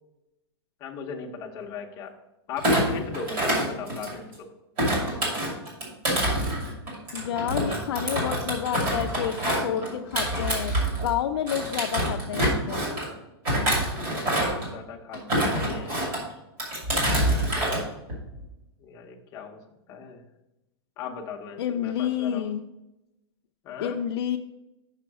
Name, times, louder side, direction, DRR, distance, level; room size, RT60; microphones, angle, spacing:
voice 1, 0.8-2.1 2.5-4.5 13.9-15.9 16.9-17.9 18.8-19.6 19.9-20.2 21.0-22.5 23.6-24.0, left 5 dB, 25° left, 1 dB, 0.8 m, -38 dB
Thump thud, 2.6-4.3 4.8-11.1 11.5-13.1 13.4-14.7 15.1-16.2 16.6-17.8 18.1-18.4, right 1 dB, 35° right, 2.5 m, -26 dB
voice 2, 7.1-12.8 21.6-22.7 23.8-24.4, left 9 dB, 75° left, 3 dB, 0.4 m, -29 dB
6.2 x 5.8 x 4.6 m, 0.94 s
supercardioid pair, 170°, 14 cm